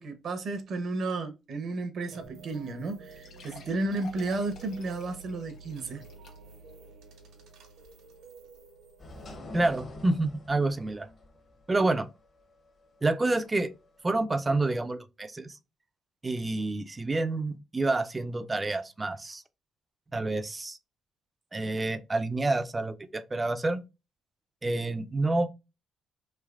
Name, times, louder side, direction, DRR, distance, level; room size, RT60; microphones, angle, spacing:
voice 1, 0.0-6.0, right 2 dB, 60° right, 0.7 m, -33 dB
sound 1, 2.1-9.4, right 3 dB, 90° right, 1.0 m, -50 dB
sound 2, 2.6-2.7 3.1-6.7 7.2-7.3 7.9-8.0, left 5 dB, 70° left, 1.1 m, -52 dB
sound 3, 9.0-14.2, left 2 dB, 45° left, 0.9 m, -47 dB
voice 2, 9.5-11.1 11.7-12.1 13.0-13.7 14.0-15.6 16.2-19.4 20.1-20.8 21.5-23.8 24.6-25.5, right 2 dB, 25° right, 0.3 m, -28 dB
3.2 x 3.1 x 2.4 m
cardioid pair, 90°, 0 cm